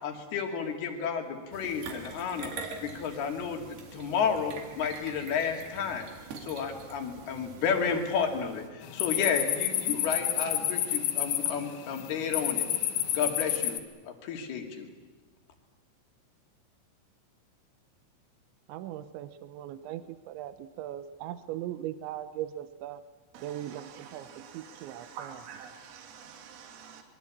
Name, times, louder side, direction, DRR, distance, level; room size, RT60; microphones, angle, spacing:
voice 1, 0.0-2.5 2.8-3.6 3.9-6.1 6.4-12.7 13.1-13.8 14.0-14.9, left 6 dB, 60° left, 3 dB, 4.2 m, -31 dB
sound 1, 1.5-8.7, right 4 dB, 60° right, 4.2 m, -44 dB
sound 2, 8.8-13.8, left 11 dB, 75° left, 3.7 m, -30 dB
voice 2, 18.7-23.0 23.4-24.3 24.5-25.4, right 12 dB, 80° right, 12 dB, 3.2 m, -39 dB
voice 3, 23.3-27.0, right 7 dB, 40° right, 3 dB, 3.2 m, -47 dB
25.5 x 22.0 x 8.6 m, 1.3 s
omnidirectional pair, 5.4 m